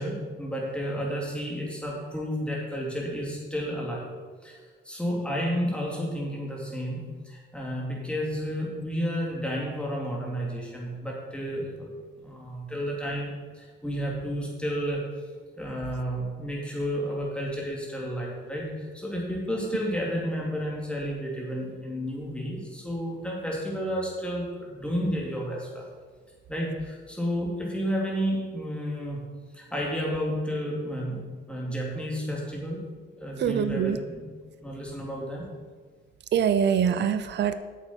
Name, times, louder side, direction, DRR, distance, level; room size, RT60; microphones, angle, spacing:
voice 1, 0.0-4.1 4.4-11.9 12.2-15.1 15.6-25.9 26.5-29.2 29.5-32.8 33.2-34.3 34.6-35.5, equal, 5° left, -3 dB, 2.8 m, -31 dB
voice 2, 33.4-34.0 36.3-37.6, right 8 dB, 60° right, 12 dB, 0.6 m, -24 dB
8.1 x 7.8 x 4.5 m, 1.5 s
cardioid pair, 90°, 20 cm